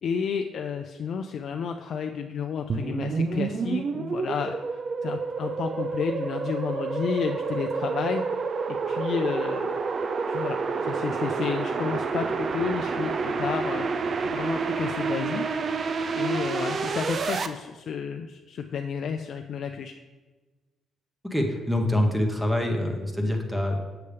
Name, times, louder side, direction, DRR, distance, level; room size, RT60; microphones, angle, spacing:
voice 1, 0.0-9.8 10.3-14.0 14.3-15.6 16.1-20.0, left 6 dB, 60° left, 5 dB, 0.4 m, -31 dB
sound 1, 2.7-17.5, right 4 dB, 50° right, 0.4 m, -29 dB
voice 2, 21.2-23.8, left 1 dB, 5° right, 2 dB, 1.0 m, -25 dB
6.9 x 6.6 x 3.3 m, 1.2 s
cardioid pair, 90°, 0 cm